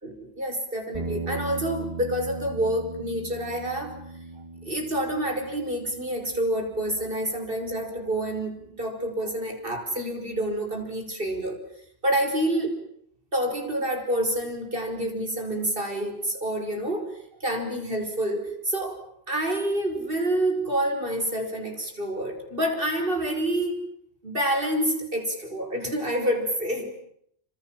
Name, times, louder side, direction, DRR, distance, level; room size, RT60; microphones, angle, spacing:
voice 1, 0.0-4.0 4.6-11.6 12.0-12.7 13.3-17.1 17.4-19.0 19.3-23.8 24.2-26.9, right 1 dB, 60° right, 4 dB, 5.8 m, -28 dB
sound 1, 0.9-9.3, right 2 dB, 30° right, 3.2 m, -39 dB
27.0 x 26.5 x 7.6 m, 0.71 s
omnidirectional pair, 1.1 m